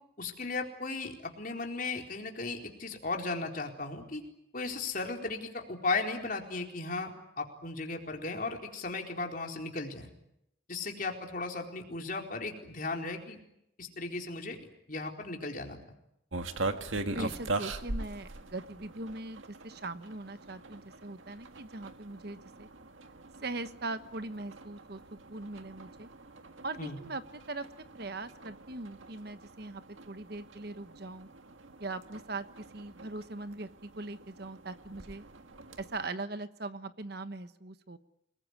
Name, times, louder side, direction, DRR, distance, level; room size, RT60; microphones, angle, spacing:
voice 1, 0.2-4.3 4.5-10.1 10.7-13.4 13.8-14.6 14.9-15.8 17.1-17.3 26.8-27.0, left 3 dB, 45° left, 2 dB, 4.2 m, -36 dB
sound 1, 16.3-36.1, right 2 dB, 85° right, 1.8 m, -42 dB
voice 2, 17.0-22.7 23.4-26.1 26.6-27.2 27.5-27.6 27.9-31.3 31.8-35.2 35.8-38.0, right 2 dB, 55° right, 11 dB, 1.2 m, -41 dB
29.0 x 21.0 x 9.8 m, 0.81 s
head